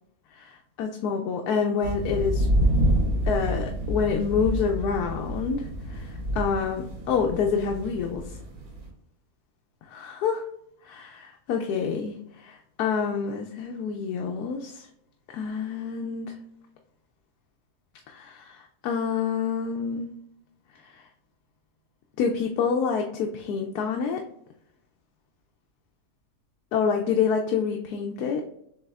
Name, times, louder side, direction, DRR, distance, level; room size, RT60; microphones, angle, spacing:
voice 1, 0.3-2.5 3.3-8.2 9.9-10.4 10.8-14.9 15.3-16.3 18.1-20.1 22.2-24.2 26.7-28.4, left 6 dB, 85° left, 2 dB, 1.1 m, -27 dB
sound 1, 1.8-8.9, equal, 70° right, 1.8 m, -28 dB
7.3 x 2.9 x 2.3 m, 0.76 s
omnidirectional pair, 1.6 m